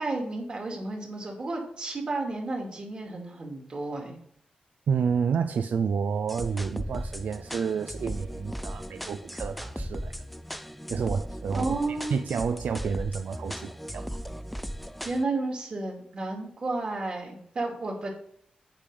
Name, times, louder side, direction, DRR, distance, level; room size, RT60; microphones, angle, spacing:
voice 1, 0.0-4.2 11.5-12.2 15.0-18.1, right 2 dB, 40° right, 2.5 m, -32 dB
voice 2, 4.9-10.1 10.9-11.8 12.1-14.1, right 6 dB, 80° right, 0.4 m, -29 dB
sound 1, 6.3-15.2, equal, ahead, 0.3 m, -37 dB
8.6 x 5.2 x 5.1 m
wide cardioid pair, 140°, 3 cm